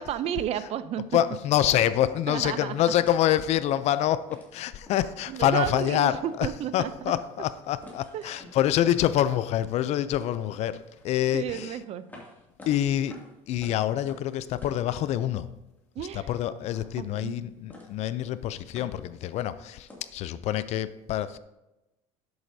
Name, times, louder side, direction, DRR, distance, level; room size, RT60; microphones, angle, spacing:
voice 1, 0.0-1.0 2.3-2.7 5.3-7.1 8.1-8.4 11.3-12.1 16.0-16.3 17.0-17.5, right 10 dB, 55° right, 0.5 m, -32 dB
voice 2, 1.1-11.8 12.7-15.5 16.1-21.4, left 11 dB, 55° left, 0.5 m, -26 dB
sound 1, 2.0-5.4 5.8-5.9 6.2-6.8 7.1-10.3 10.8-15.5 15.8-16.4 16.6-17.4 17.7-18.2 18.5-20.2, left 1 dB, 15° left, 2.5 m, -51 dB
10.5 x 7.9 x 2.7 m
cardioid pair, 120°, 13 cm